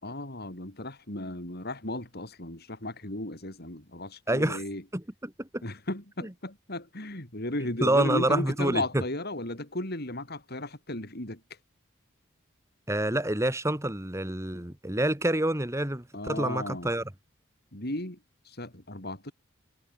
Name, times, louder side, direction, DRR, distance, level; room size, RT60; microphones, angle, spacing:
voice 1, 0.0-4.8 5.6-11.4 16.1-16.9 17.7-18.2 18.5-19.3, left 1 dB, 50° left, 5.5 m, -35 dB
voice 2, 4.3-4.6 4.9-5.6 7.8-8.8 12.9-17.0, right 1 dB, 15° right, 1.9 m, -27 dB
head